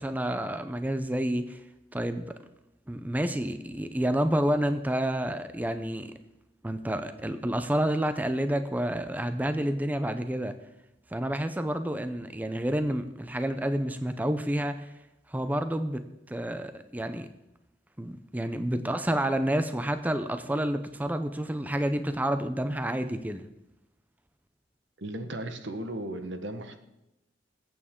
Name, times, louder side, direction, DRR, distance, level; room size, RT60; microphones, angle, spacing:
voice 1, 0.0-1.6 1.9-2.2 2.9-6.1 6.6-10.6 11.1-14.9 15.3-16.0 16.3-17.3 18.0-23.4, right 1 dB, 10° right, 9 dB, 0.6 m, -29 dB
voice 2, 25.0-26.8, right 1 dB, 75° right, 8 dB, 1.2 m, -36 dB
21.5 x 8.6 x 3.7 m, 0.90 s
head